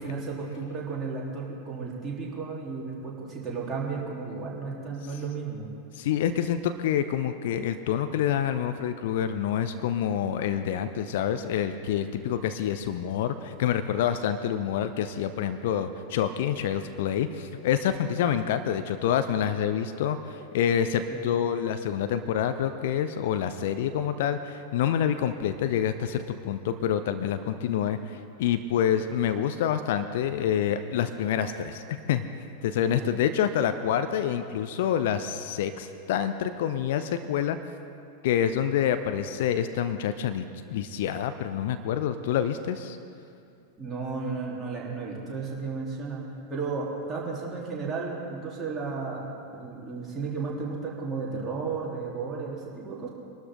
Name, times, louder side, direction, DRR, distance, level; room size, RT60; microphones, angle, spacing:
voice 1, 0.0-5.7 21.1-21.2 32.9-33.1 43.8-46.2 46.5-53.1, right 4 dB, 20° right, -5 dB, 3.6 m, -33 dB
voice 2, 6.0-32.2 32.6-37.6 38.2-40.5 40.7-43.0, left 9 dB, 55° left, 10 dB, 0.6 m, -27 dB
23.5 x 12.5 x 3.8 m, 2.5 s
figure-of-eight pair, 90°, 0 cm